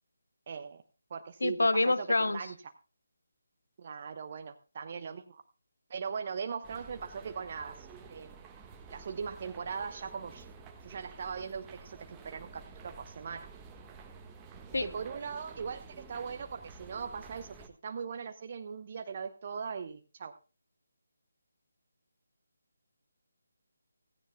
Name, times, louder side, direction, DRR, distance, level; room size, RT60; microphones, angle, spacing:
voice 1, 0.5-0.8 1.1-2.5 3.8-5.4 5.9-8.4 8.9-10.5 10.8-13.5 14.8-20.3, right 6 dB, 35° right, 0.9 m, -40 dB
voice 2, 1.4-2.4 14.7-14.9, left 2 dB, 65° left, 0.8 m, -26 dB
sound 1, 6.6-17.7, right 4 dB, 15° right, 1.5 m, -51 dB
17.0 x 16.0 x 2.2 m
figure-of-eight pair, 150°, 0 cm